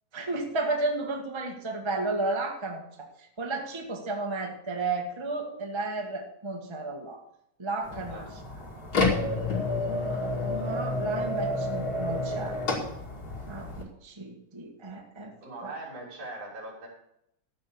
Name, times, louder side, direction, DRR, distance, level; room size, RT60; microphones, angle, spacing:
voice 1, 0.1-2.8 3.4-7.2 7.6-8.2 9.4-12.6 13.5-15.3 15.6-15.7, right 3 dB, 15° right, 1 dB, 1.2 m, -33 dB
sound 1, 7.8-13.8, left 2 dB, 35° left, 2.4 m, -30 dB
voice 2, 15.4-16.9, right 2 dB, 80° right, -3 dB, 5.3 m, -41 dB
14.0 x 5.8 x 7.1 m, 0.75 s
omnidirectional pair, 3.4 m